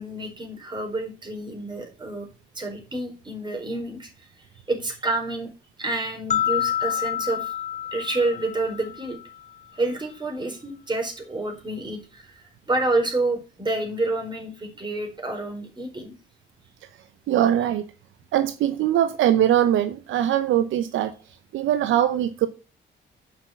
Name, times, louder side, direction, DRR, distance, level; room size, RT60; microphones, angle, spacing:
voice 1, 0.0-2.3 2.5-4.1 4.7-5.5 5.8-7.5 7.9-9.2 9.7-16.1, right 2 dB, 20° right, 4.3 m, -28 dB
sound 1, 6.3-9.4, left 10 dB, 35° left, 1.3 m, -28 dB
voice 2, 17.3-17.8 18.3-21.1 21.5-22.5, right 11 dB, 80° right, 0.8 m, -21 dB
8.6 x 5.9 x 5.8 m
cardioid pair, 90°, 20 cm